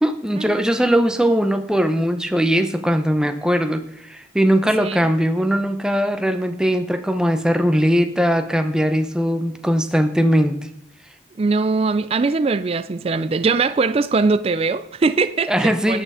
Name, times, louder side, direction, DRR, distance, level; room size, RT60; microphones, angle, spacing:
voice 1, 0.0-10.6 15.5-16.0, equal, 5° right, 0.8 m, -20 dB
voice 2, 11.4-16.0, right 4 dB, 35° right, 0.4 m, -21 dB
8.9 x 8.8 x 4.9 m
head